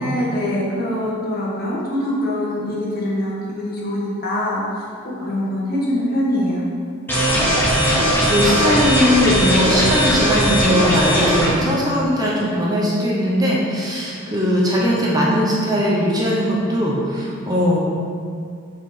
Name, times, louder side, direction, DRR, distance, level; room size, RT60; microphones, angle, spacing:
voice 1, 0.0-6.6, left 1 dB, 45° left, -5 dB, 1.5 m, -24 dB
sound 1, 7.1-11.5, equal, 10° left, 1.4 m, -18 dB
voice 2, 7.5-17.8, equal, 20° right, -5 dB, 0.9 m, -20 dB
5.8 x 4.9 x 5.0 m, 2.2 s
head